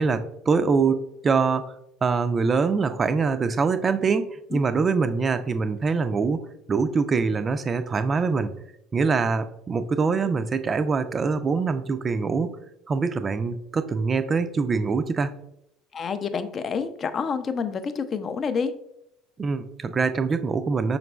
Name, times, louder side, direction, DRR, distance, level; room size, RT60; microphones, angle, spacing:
voice 1, 0.0-1.7 2.0-8.5 8.9-12.5 12.9-15.3 19.4-21.0, right 4 dB, 30° right, 11 dB, 0.4 m, -24 dB
voice 2, 15.9-18.7, left 5 dB, 40° left, 10 dB, 0.4 m, -28 dB
5.8 x 3.9 x 2.3 m, 0.81 s
figure-of-eight pair, 65°, 0 cm